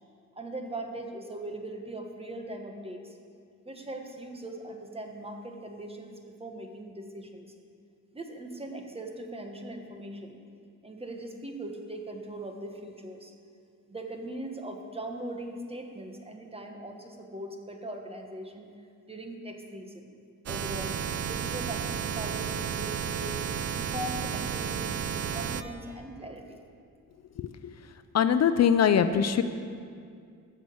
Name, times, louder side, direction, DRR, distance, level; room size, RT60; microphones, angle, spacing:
voice 1, 0.3-3.2 3.6-7.5 8.1-10.4 10.8-13.3 13.9-18.7 19.1-20.1 20.5-26.6, right 1 dB, 20° right, 3 dB, 1.3 m, -40 dB
sound 1, 20.5-25.6, right 7 dB, 55° right, 0.6 m, -32 dB
voice 2, 27.4-27.7 28.1-29.4, left 8 dB, 55° left, 10 dB, 0.5 m, -23 dB
14.0 x 6.4 x 7.8 m, 2.3 s
wide cardioid pair, 135°, 31 cm